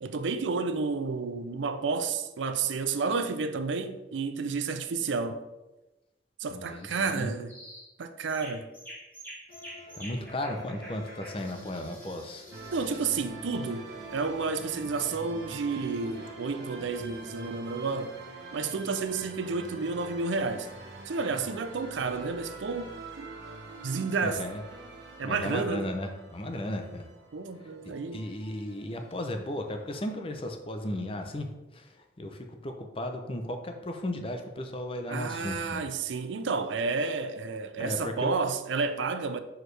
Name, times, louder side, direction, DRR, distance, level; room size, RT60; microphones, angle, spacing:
voice 1, 0.0-5.4 6.4-7.5 8.0-8.7 12.7-13.8 14.1-18.1 18.5-20.7 21.1-23.3 23.8-24.4 25.2-25.9 27.3-28.2 35.1-39.4, right 4 dB, 85° right, 0.5 m, -31 dB
voice 2, 6.5-7.3 9.9-12.5 24.2-24.6 25.2-27.1 27.8-35.8 37.8-38.3, left 1 dB, 30° left, 0.6 m, -35 dB
sound 1, 6.8-7.1 7.5-7.9 8.3-13.2, equal, 10° left, 2.0 m, -48 dB
sound 2, 9.5-17.5, equal, 45° left, 1.9 m, -49 dB
sound 3, 12.5-30.2, right 3 dB, 65° right, 1.0 m, -46 dB
6.4 x 4.6 x 3.3 m
head